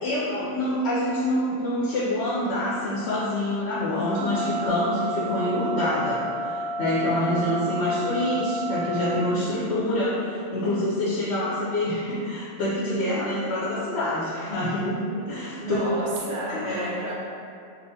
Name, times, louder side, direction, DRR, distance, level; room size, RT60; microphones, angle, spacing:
voice 1, 0.0-15.0 15.3-15.8 16.5-16.9, left 1 dB, 65° left, -8 dB, 0.8 m, -26 dB
sound 1, 4.1-9.1, equal, 50° right, 0.9 m, -31 dB
voice 2, 7.1-7.6 15.1-17.1, right 1 dB, 75° right, -5 dB, 0.4 m, -33 dB
3.8 x 2.4 x 2.7 m, 2.5 s
omnidirectional pair, 1.3 m